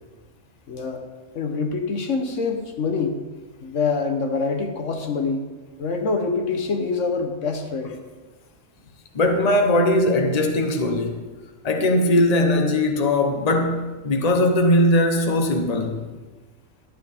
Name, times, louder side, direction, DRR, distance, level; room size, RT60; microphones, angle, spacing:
voice 1, 0.7-1.1 1.3-3.2 3.6-5.5 5.8-8.0, left 4 dB, 70° left, 1.3 m, -25 dB
voice 2, 9.1-11.2 11.6-16.1, left 1 dB, 35° left, 0.9 m, -20 dB
12.0 x 9.3 x 3.5 m
omnidirectional pair, 1.4 m